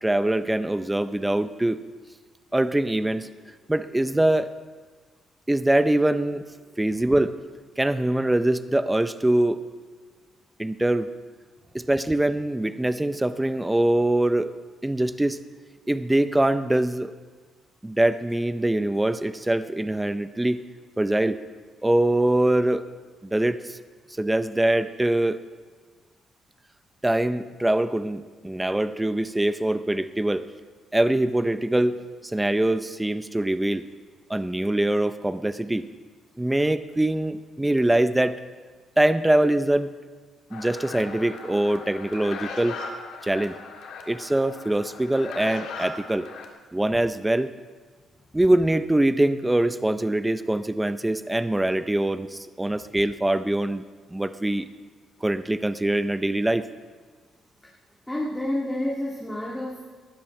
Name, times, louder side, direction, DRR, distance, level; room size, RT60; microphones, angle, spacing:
voice 1, 0.0-1.8 2.5-3.3 3.7-4.5 5.5-6.4 6.8-7.4 7.8-9.6 10.6-11.1 11.7-14.5 14.8-15.4 15.9-17.1 17.8-20.6 21.0-21.4 21.8-22.8 23.2-23.8 24.2-25.4 27.0-30.4 30.9-32.0 32.2-33.8 34.3-35.9 36.4-38.4 39.0-39.9 40.5-42.8 43.2-43.5 44.1-46.3 46.7-47.5 48.3-53.8 54.1-54.7 55.2-56.7, right 1 dB, 10° right, 12 dB, 0.6 m, -23 dB
sound 1, 40.5-46.5, left 4 dB, 80° left, 1.8 m, -38 dB
voice 2, 58.1-59.8, left 1 dB, 10° left, -4 dB, 2.2 m, -29 dB
18.5 x 13.0 x 3.2 m, 1.4 s
cardioid pair, 90°, 0 cm